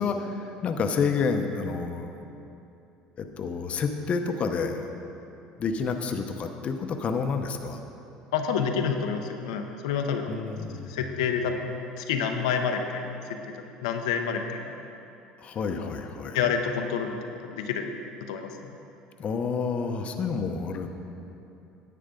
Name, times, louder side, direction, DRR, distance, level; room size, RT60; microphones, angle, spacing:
voice 1, 0.0-2.1 3.2-4.9 5.6-7.8 10.3-10.9 15.4-16.4 19.2-20.9, left 5 dB, 45° left, 5 dB, 0.8 m, -29 dB
voice 2, 8.3-10.3 10.9-11.6 12.0-13.1 13.8-14.7 15.7-15.9 16.3-17.9 18.2-18.5, left 6 dB, 90° left, 4 dB, 0.7 m, -28 dB
10.5 x 8.5 x 3.8 m, 2.8 s
supercardioid pair, 90°, 3 cm